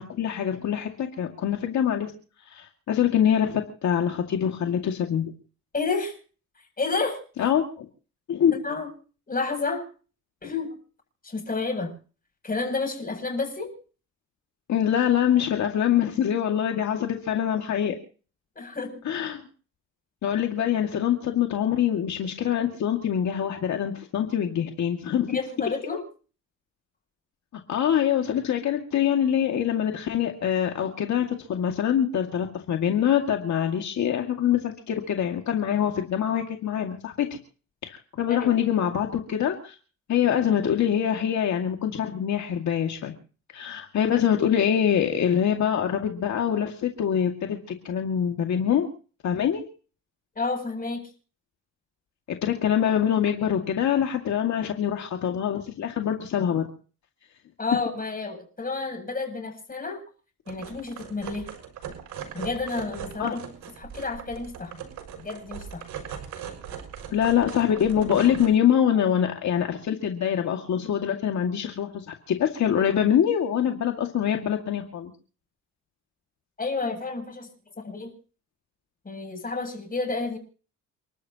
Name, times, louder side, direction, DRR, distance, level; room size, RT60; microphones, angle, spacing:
voice 1, 0.0-2.1 2.5-5.3 7.4-7.9 8.3-8.5 14.7-18.0 19.1-19.4 20.2-25.3 27.7-37.3 37.8-39.8 40.1-43.1 43.5-48.9 49.2-49.6 52.3-56.7 63.2-63.3 67.1-75.1, left 9 dB, 65° left, 3 dB, 2.2 m, -24 dB
voice 2, 5.7-6.1 6.8-7.2 8.5-8.9 9.3-9.9 10.4-10.8 11.2-11.9 12.4-13.7 18.6-19.0 25.3-26.0 38.3-38.5 50.4-51.1 57.6-60.0 60.5-61.5 62.3-63.4 63.8-64.8 65.2-65.8 76.6-77.5 77.8-78.1 79.0-80.4, left 3 dB, 30° left, 4 dB, 7.6 m, -30 dB
sound 1, 60.5-68.5, right 8 dB, 80° right, 6.6 m, -39 dB
30.0 x 12.5 x 3.0 m, 0.39 s
cardioid pair, 90°, 30 cm